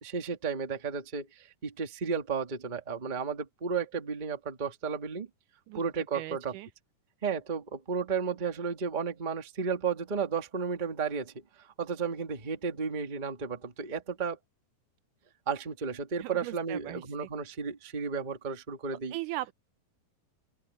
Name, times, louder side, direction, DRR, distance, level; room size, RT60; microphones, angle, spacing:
voice 1, 0.0-5.3 5.7-6.5 7.2-14.4 15.5-19.2, right 5 dB, 25° right, 1.0 m, -33 dB
voice 2, 6.1-6.7 16.2-17.3 18.9-19.5, right 16 dB, 80° right, 2.0 m, -39 dB
open air
omnidirectional pair, 3.8 m